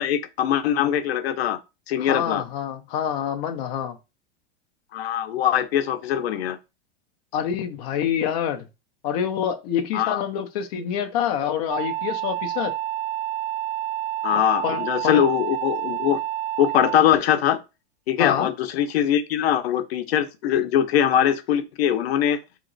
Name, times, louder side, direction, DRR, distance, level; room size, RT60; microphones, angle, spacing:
voice 1, 0.0-1.6 1.9-2.4 4.9-6.6 9.9-10.2 14.2-16.2 16.6-17.6 18.1-22.4, left 10 dB, 85° left, 0.7 m, -22 dB
voice 2, 2.0-4.0 7.3-8.6 9.0-12.7 14.6-15.2 18.2-18.5, left 9 dB, 40° left, 0.6 m, -26 dB
sound 1, 11.7-17.1, right 12 dB, 40° right, 0.4 m, -29 dB
4.0 x 2.9 x 3.9 m
supercardioid pair, 165°, 30 cm